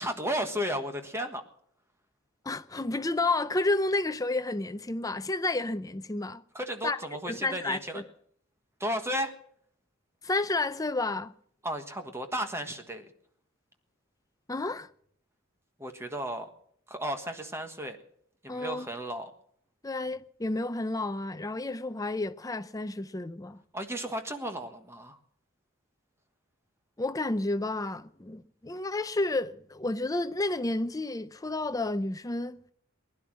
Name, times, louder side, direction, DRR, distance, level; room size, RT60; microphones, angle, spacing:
voice 1, 0.0-1.4 6.5-8.0 8.8-9.3 11.6-13.1 15.8-16.5 16.9-18.0 18.4-19.3 23.7-25.2, equal, 15° right, 1.4 m, -34 dB
voice 2, 2.4-6.4 6.8-7.0 7.3-8.1 10.2-11.3 14.5-14.9 18.5-18.9 19.8-23.6 27.0-32.6, left 2 dB, 15° left, 0.6 m, -31 dB
20.0 x 11.0 x 6.3 m
head